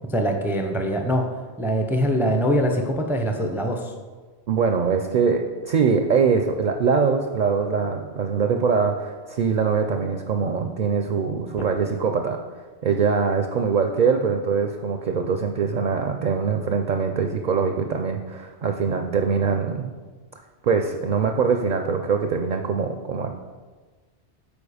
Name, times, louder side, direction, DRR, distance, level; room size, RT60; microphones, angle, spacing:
voice 1, 0.1-1.3 1.6-3.9, equal, 5° right, 4 dB, 0.4 m, -23 dB
voice 2, 4.5-12.4 12.8-19.9 20.6-23.3, right 5 dB, 55° right, 5 dB, 0.5 m, -23 dB
7.1 x 4.7 x 4.9 m, 1.4 s
omnidirectional pair, 1.1 m